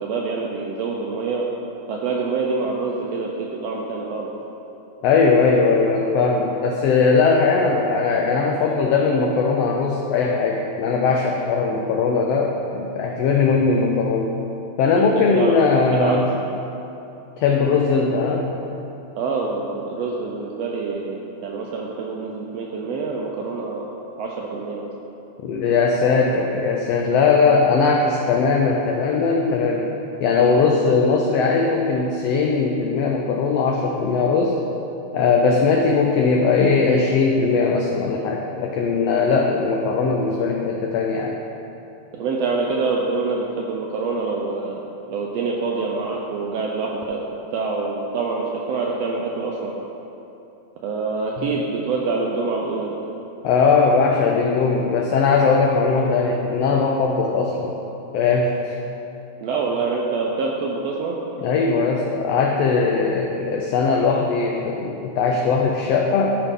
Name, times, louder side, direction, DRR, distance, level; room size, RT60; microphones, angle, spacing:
voice 1, 0.0-1.5 1.9-4.3 14.9-15.6 15.9-16.2 19.1-24.9 42.1-47.2 47.5-49.7 50.8-52.9 59.4-61.2, right 4 dB, 80° right, -1 dB, 1.5 m, -26 dB
voice 2, 5.0-14.4 14.8-16.3 17.4-18.5 25.4-29.9 30.2-34.6 35.1-41.4 51.4-51.5 53.4-57.7 58.1-58.7 61.4-66.4, left 4 dB, 90° left, 0 dB, 1.4 m, -19 dB
12.5 x 4.8 x 3.6 m, 2.9 s
omnidirectional pair, 3.5 m